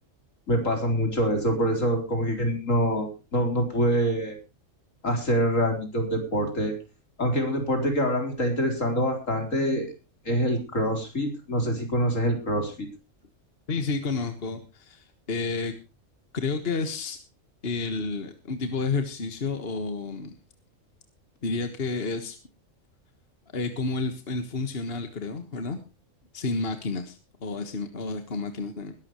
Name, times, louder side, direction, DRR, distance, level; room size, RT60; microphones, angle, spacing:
voice 1, 0.5-4.4 5.0-6.7 7.2-9.9 10.2-12.9, equal, 75° left, 4 dB, 4.4 m, -25 dB
voice 2, 13.7-15.7 16.3-17.2 17.6-20.4 21.4-22.4 23.5-25.8 26.3-28.9, left 4 dB, 50° left, 8 dB, 1.7 m, -30 dB
21.0 x 12.5 x 3.1 m, 0.30 s
omnidirectional pair, 1.3 m